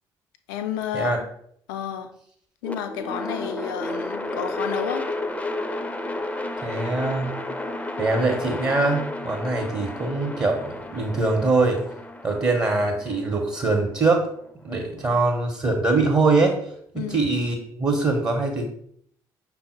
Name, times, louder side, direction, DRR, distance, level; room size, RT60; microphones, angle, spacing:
voice 1, 0.5-1.3 1.7-2.1 2.6-5.1 15.0-15.2 17.0-17.3, left 9 dB, 75° left, 7 dB, 0.4 m, -31 dB
sound 1, 2.6-14.7, left 1 dB, 10° left, 0.5 m, -32 dB
voice 2, 6.6-7.3 8.0-11.8 12.2-14.3 14.6-16.6 16.9-18.6, right 3 dB, 30° right, 1 dB, 0.8 m, -23 dB
5.5 x 2.0 x 4.3 m, 0.65 s
figure-of-eight pair, 45°, 12 cm